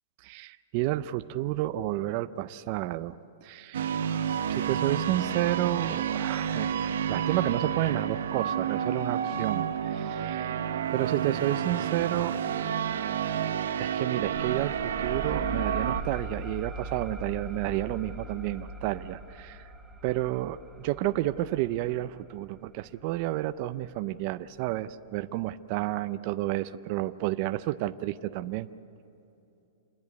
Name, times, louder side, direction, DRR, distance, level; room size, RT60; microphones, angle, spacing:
voice 1, 0.2-3.2 3.4-3.9 4.7-10.6 10.9-12.4 13.8-19.7 20.0-28.7, right 15 dB, 35° right, 12 dB, 0.4 m, -31 dB
sound 1, 3.7-16.0, right 8 dB, 75° right, 0.9 m, -30 dB
sound 2, 14.2-23.4, right 1 dB, 5° right, 0.8 m, -40 dB
27.0 x 10.5 x 9.5 m, 2.8 s
supercardioid pair, 170°, 0 cm